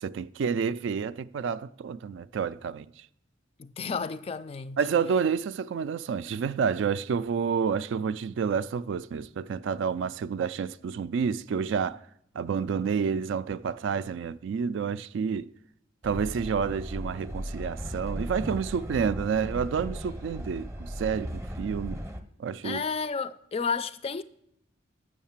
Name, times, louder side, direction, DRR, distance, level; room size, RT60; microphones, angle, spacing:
voice 1, 0.0-2.9 4.8-12.0 12.4-15.5 16.0-22.0 22.4-22.8, right 6 dB, 70° right, 0.3 m, -29 dB
voice 2, 3.6-4.8 22.6-24.2, left 5 dB, 30° left, 0.3 m, -32 dB
Train, 16.0-22.2, equal, 15° right, 0.6 m, -37 dB
7.3 x 6.5 x 7.2 m
head